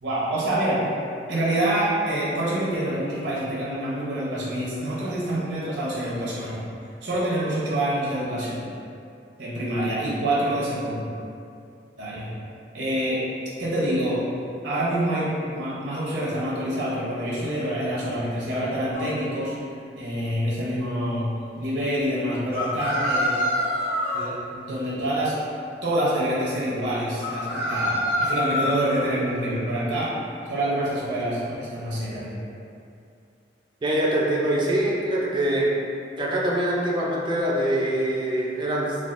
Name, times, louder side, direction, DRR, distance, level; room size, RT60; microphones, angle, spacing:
voice 1, 0.0-6.6 7.0-8.7 9.4-11.0 12.0-12.3 12.7-13.2 13.6-14.2 14.6-19.5 19.9-21.3 21.6-23.3 24.1-25.3 25.8-30.1 30.5-32.4, right 1 dB, 70° right, -7 dB, 0.7 m, -26 dB
sound 1, 18.9-19.1 22.5-24.2 27.2-29.0, left 1 dB, 60° left, 1.2 m, -26 dB
voice 2, 33.8-35.7 36.2-39.0, right 1 dB, 25° right, -4 dB, 0.4 m, -24 dB
3.3 x 2.3 x 2.5 m, 2.5 s
head